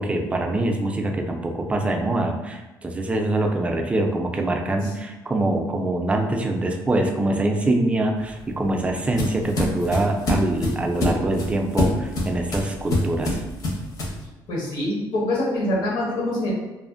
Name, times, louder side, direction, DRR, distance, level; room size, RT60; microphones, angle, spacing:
voice 1, 0.0-13.4, right 2 dB, 15° right, 3 dB, 0.3 m, -24 dB
sound 1, 8.2-14.2, left 1 dB, 50° left, 0.6 m, -26 dB
voice 2, 14.5-16.5, left 1 dB, 80° left, -4 dB, 0.9 m, -24 dB
2.4 x 2.4 x 2.4 m, 1.1 s
cardioid pair, 125°, 8 cm